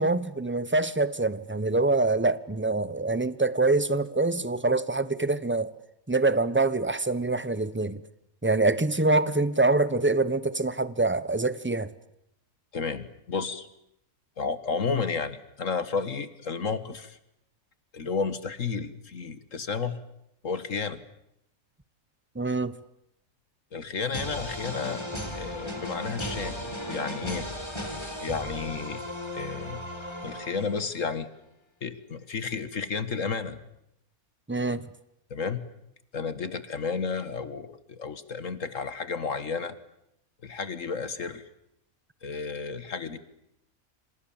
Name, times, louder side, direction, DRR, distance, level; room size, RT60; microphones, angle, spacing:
voice 1, 0.0-5.7 6.1-8.0 8.4-11.9 22.3-22.8 34.5-34.8, right 3 dB, 10° right, 0.9 m, -25 dB
voice 2, 12.7-13.7 14.4-17.2 17.9-20.0 20.4-21.0 23.7-25.1 25.3-27.5 28.2-29.0 29.3-29.8 30.2-31.3 31.8-33.6 35.3-35.6 36.1-39.8 40.4-41.4 42.2-43.2, left 5 dB, 60° left, 1.9 m, -32 dB
sound 1, 24.1-31.1, equal, 20° left, 4.2 m, -36 dB
27.5 x 27.0 x 7.2 m
omnidirectional pair, 1.5 m